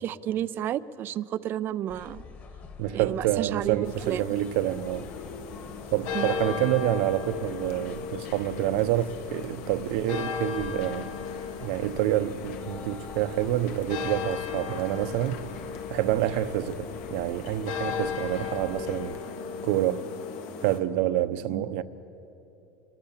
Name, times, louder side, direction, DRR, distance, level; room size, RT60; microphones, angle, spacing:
voice 1, 0.0-2.2 2.9-4.3 6.1-6.4 21.5-21.7, right 11 dB, 30° right, 0.4 m, -31 dB
sound 1, 1.9-19.2, left 5 dB, 25° left, 1.7 m, -47 dB
voice 2, 2.8-5.1 5.9-11.1 11.6-15.5 15.9-19.2 19.6-20.0 20.6-21.8, right 13 dB, 70° right, 0.9 m, -27 dB
sound 2, 3.8-20.8, left 7 dB, 65° left, 1.7 m, -36 dB
sound 3, 7.3-19.4, left 6 dB, 85° left, 2.2 m, -52 dB
26.5 x 21.5 x 7.4 m
cardioid pair, 175°, 7 cm